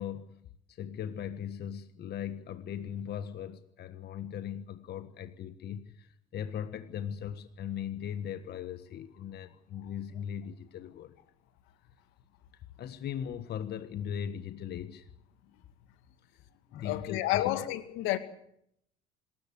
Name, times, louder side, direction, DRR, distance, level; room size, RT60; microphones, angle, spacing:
voice 1, 0.0-11.2 12.8-15.1 16.7-17.7, left 9 dB, 55° left, 1.5 m, -39 dB
voice 2, 16.8-18.2, left 15 dB, 80° left, 2.1 m, -30 dB
26.0 x 14.0 x 8.6 m
supercardioid pair, 85°, 20 cm